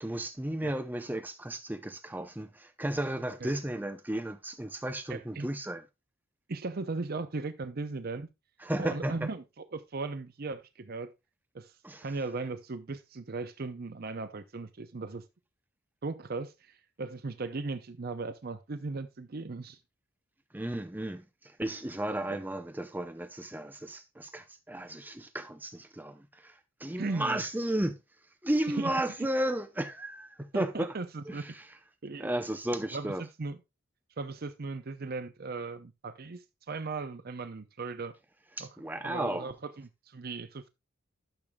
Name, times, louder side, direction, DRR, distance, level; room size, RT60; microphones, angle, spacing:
voice 1, 0.0-5.8 8.6-9.1 11.8-12.1 20.5-28.0 28.4-30.9 31.3-31.7 32.2-33.2 38.6-39.5, right 1 dB, 10° right, 0.6 m, -34 dB
voice 2, 5.1-5.5 6.5-8.3 8.8-11.1 11.5-15.2 16.0-19.8 22.3-22.4 27.0-27.4 28.8-28.9 29.2-29.3 30.5-31.4 32.0-32.3 32.9-33.6 34.2-38.2 38.6-38.8 39.0-40.7, right 3 dB, 50° right, 0.6 m, -37 dB
12.0 x 6.7 x 2.3 m
head